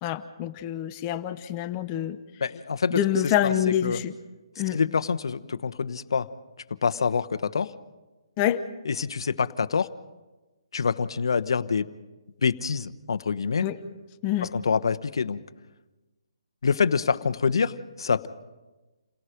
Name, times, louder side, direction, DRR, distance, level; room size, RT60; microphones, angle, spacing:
voice 1, 0.0-2.2 2.9-4.1 4.6-4.8 8.4-8.6 13.6-13.8 14.2-14.5, left 11 dB, 25° left, 10 dB, 0.9 m, -26 dB
voice 2, 2.4-3.0 3.4-3.5 3.8-4.0 4.7-6.3 6.8-7.7 8.8-9.9 10.7-11.9 12.4-13.7 14.5-15.4 16.6-18.3, left 5 dB, 70° left, 13 dB, 1.0 m, -26 dB
29.0 x 17.5 x 5.2 m, 1.1 s
hypercardioid pair, 155°, 3 cm